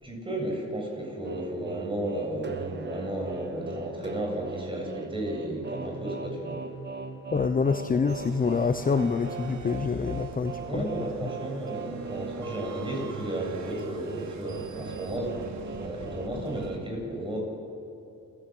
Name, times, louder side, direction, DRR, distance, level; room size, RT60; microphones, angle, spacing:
voice 1, 0.0-6.6 7.9-8.0 10.7-17.4, right 1 dB, 15° right, 0 dB, 7.9 m, -33 dB
sound 1, 1.2-16.7, right 5 dB, 35° right, 1.6 m, -39 dB
voice 2, 7.3-10.8, left 5 dB, 30° left, 9 dB, 0.9 m, -26 dB
sound 2, 8.1-16.8, right 4 dB, 70° right, 2.8 m, -44 dB
28.0 x 16.5 x 7.9 m, 3.0 s
cardioid pair, 90°, 30 cm